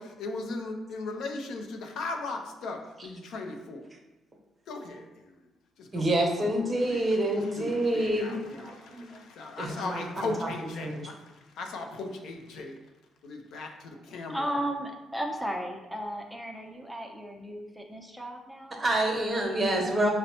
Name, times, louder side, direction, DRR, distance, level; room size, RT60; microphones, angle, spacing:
voice 1, 0.0-3.8 4.7-5.5 5.8-12.8 13.2-14.5, left 3 dB, 75° left, 3 dB, 0.5 m, -38 dB
voice 2, 5.9-9.2 9.6-10.3 10.8-11.0 18.8-20.1, right 1 dB, 30° right, 0 dB, 0.8 m, -27 dB
voice 3, 14.3-18.8 20.0-20.1, equal, ahead, 2 dB, 0.6 m, -35 dB
5.1 x 2.0 x 2.8 m, 1.0 s
cardioid pair, 90°, 0 cm